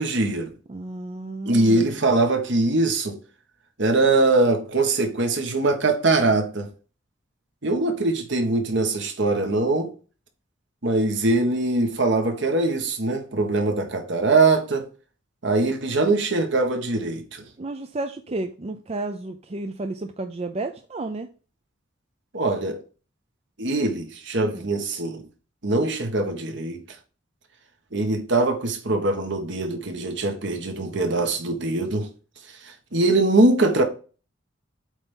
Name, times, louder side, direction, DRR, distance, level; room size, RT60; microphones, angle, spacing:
voice 1, 0.0-0.5 1.4-3.2 3.8-6.7 7.6-9.9 10.8-14.9 15.4-17.5 22.3-22.8 23.6-25.2 25.6-26.8 27.9-32.1 32.6-33.8, right 2 dB, 65° right, 1.4 m, -22 dB
voice 2, 0.7-2.0 17.6-21.3 24.4-24.7, right 2 dB, 30° right, 0.5 m, -32 dB
8.2 x 3.5 x 5.5 m
head